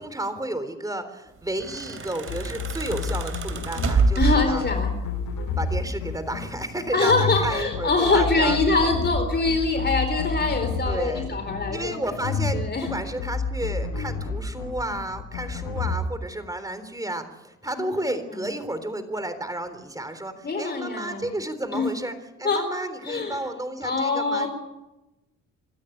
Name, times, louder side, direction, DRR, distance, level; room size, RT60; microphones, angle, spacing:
voice 1, 0.0-4.6 5.6-8.6 10.9-11.3 11.7-24.5, right 1 dB, 10° right, 10 dB, 3.6 m, -32 dB
sound 1, 1.4-5.0 6.1-6.9 7.3-7.6, right 4 dB, 45° right, 2.9 m, -27 dB
sound 2, 2.3-16.0, left 5 dB, 90° left, 7.9 m, -29 dB
voice 2, 4.1-4.9 6.9-12.0 12.5-12.9 17.7-18.5 20.4-21.3 21.7-21.9 22.4-22.6 23.0-23.4 23.8-24.5, left 3 dB, 35° left, 5 dB, 4.3 m, -24 dB
25.0 x 13.0 x 10.0 m, 1.0 s
cardioid pair, 90°, 30 cm